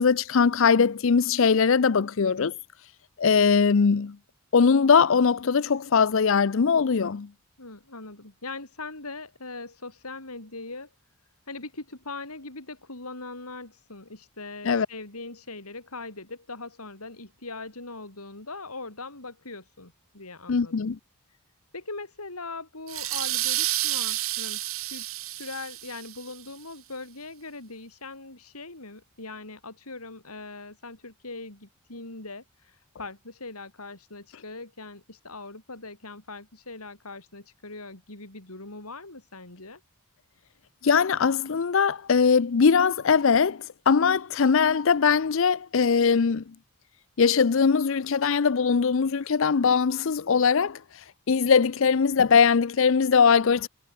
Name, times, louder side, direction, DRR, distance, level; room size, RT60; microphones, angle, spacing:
voice 1, 0.0-2.5 3.2-4.2 4.5-7.3 14.6-14.9 20.5-21.0 40.8-46.4 47.2-50.8 51.3-53.7, left 5 dB, 60° left, 0.5 m, -21 dB
voice 2, 7.6-10.9 11.5-20.9 21.7-25.1 25.3-39.8, left 3 dB, 90° left, 5.6 m, -41 dB
sound 1, 22.9-26.3, right 15 dB, 70° right, 2.6 m, -30 dB
head